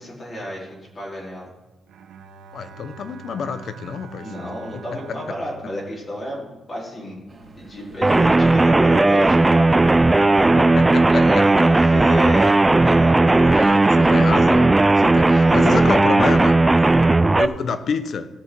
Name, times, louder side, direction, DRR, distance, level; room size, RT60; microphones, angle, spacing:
voice 1, 0.0-1.5 4.2-7.2 7.6-10.5 11.1-12.5 12.8-14.8 15.3-15.9 16.9-17.2, equal, 30° left, -5 dB, 3.8 m, -31 dB
Bowed string instrument, 1.9-7.2, right 5 dB, 90° right, 1.2 m, -45 dB
voice 2, 2.5-4.2 10.6-11.4 13.5-16.6 17.4-18.3, left 6 dB, 60° left, 11 dB, 0.9 m, -28 dB
sound 1, 7.3-13.0, right 3 dB, 30° right, 3.4 m, -45 dB
sound 2, 8.0-17.5, right 2 dB, 15° right, 0.4 m, -15 dB
17.5 x 6.6 x 4.6 m, 1.1 s
cardioid pair, 120°, 0 cm